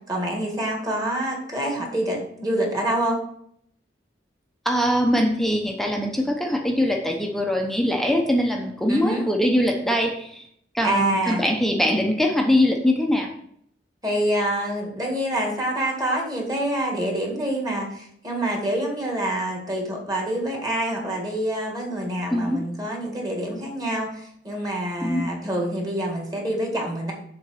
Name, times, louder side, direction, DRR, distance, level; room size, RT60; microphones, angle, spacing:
voice 1, 0.1-3.2 8.9-9.2 10.8-11.4 14.0-27.1, right 1 dB, 20° right, 0 dB, 2.0 m, -26 dB
voice 2, 4.6-10.4 10.7-13.3 22.3-22.6 25.0-25.3, left 1 dB, ahead, 2 dB, 0.7 m, -22 dB
7.1 x 3.8 x 6.2 m, 0.69 s
head